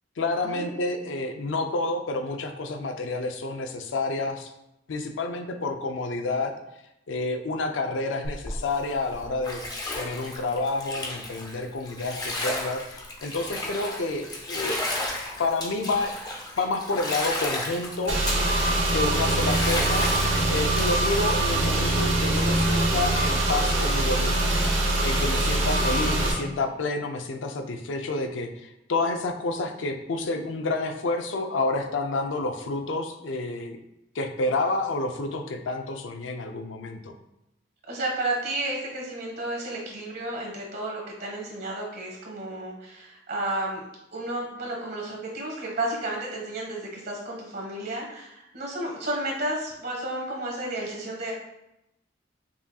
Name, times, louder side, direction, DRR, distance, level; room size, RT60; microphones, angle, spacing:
voice 1, 0.2-4.5 4.9-6.5 7.1-9.6 9.9-14.8 15.4-16.1 16.6-18.2 18.9-20.1 20.5-24.6 25.0-33.8 34.2-37.1, left 3 dB, 90° left, 6 dB, 0.4 m, -29 dB
Bathtub (filling or washing), 8.2-21.7, left 2 dB, 20° left, 0.5 m, -34 dB
Car / Engine, 18.1-26.3, right 1 dB, 85° right, 1.0 m, -23 dB
voice 2, 37.9-43.8 44.1-51.3, right 1 dB, 60° right, -1 dB, 1.3 m, -32 dB
5.5 x 2.7 x 2.3 m, 0.86 s
head